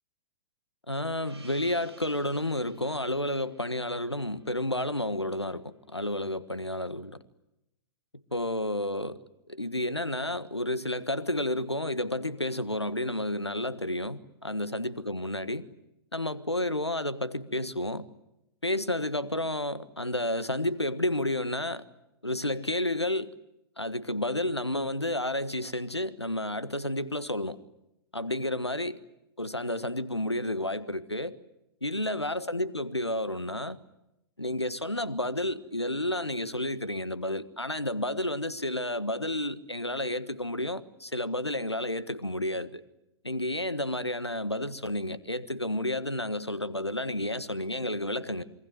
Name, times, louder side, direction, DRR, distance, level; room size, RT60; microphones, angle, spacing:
voice 1, 0.9-7.2 8.3-9.2 9.5-15.7 16.1-18.1 18.6-21.8 22.2-23.3 23.8-27.6 28.1-29.0 29.4-31.4 31.8-33.8 34.4-42.8 43.2-48.4, left 1 dB, 90° left, 1.5 m, -31 dB
Gong, 1.2-6.0, right 2 dB, 80° right, 4.9 m, -56 dB
27.5 x 23.5 x 9.3 m
figure-of-eight pair, 110°, 14 cm